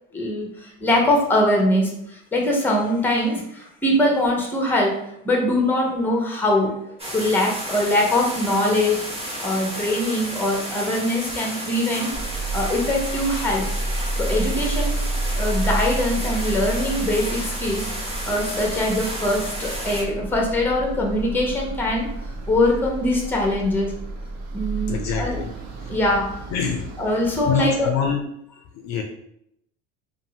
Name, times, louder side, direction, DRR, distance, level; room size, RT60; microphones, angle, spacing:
voice 1, 0.1-6.8 7.1-9.0 9.4-12.1 12.5-13.7 14.2-15.0 15.4-22.1 22.5-23.9 24.5-25.4 25.9-26.4 27.0-27.9, left 1 dB, 5° left, 0 dB, 0.6 m, -22 dB
sound 1, 7.0-20.0, right 1 dB, 15° right, 1.1 m, -32 dB
sound 2, 12.1-27.9, right 2 dB, 40° right, 0.7 m, -30 dB
voice 2, 24.9-25.5 25.8-25.9 26.5-26.8 27.5-28.3 28.7-29.0, left 7 dB, 50° left, 3 dB, 0.5 m, -25 dB
2.6 x 2.5 x 2.7 m, 0.74 s
supercardioid pair, 100°, 39 cm